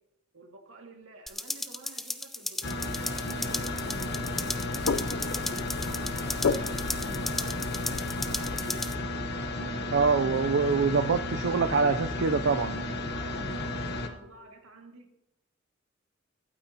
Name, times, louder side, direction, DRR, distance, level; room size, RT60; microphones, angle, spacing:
voice 1, 0.3-2.9 3.3-4.8 5.8-8.1 9.4-11.4 13.1-15.1, right 2 dB, 85° right, 2 dB, 2.0 m, -50 dB
sound 1, 1.3-8.9, left 1 dB, ahead, 0.4 m, -36 dB
sound 2, 2.6-14.1, left 2 dB, 55° left, 1.0 m, -33 dB
sound 3, 3.5-8.5, left 5 dB, 85° left, 0.5 m, -35 dB
voice 2, 9.9-12.8, right 5 dB, 65° right, 9 dB, 0.4 m, -25 dB
23.5 x 8.8 x 2.8 m, 0.86 s
head